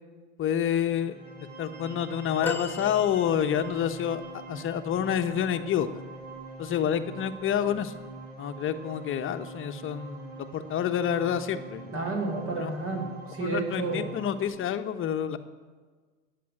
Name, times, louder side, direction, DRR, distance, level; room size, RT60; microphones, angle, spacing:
voice 1, 0.4-1.2 1.6-5.9 6.6-7.9 8.4-11.8 12.6-12.7 13.4-15.4, left 9 dB, 35° left, 8 dB, 1.1 m, -28 dB
sound 1, 0.9-14.4, right 3 dB, 65° right, 4.0 m, -44 dB
sound 2, 2.4-3.9 6.2-6.4 7.7-7.8, left 4 dB, 5° left, 1.1 m, -36 dB
voice 2, 11.9-14.1, right 3 dB, 40° right, 1 dB, 5.6 m, -31 dB
19.0 x 7.8 x 8.7 m, 1.5 s
hypercardioid pair, 90°, 34 cm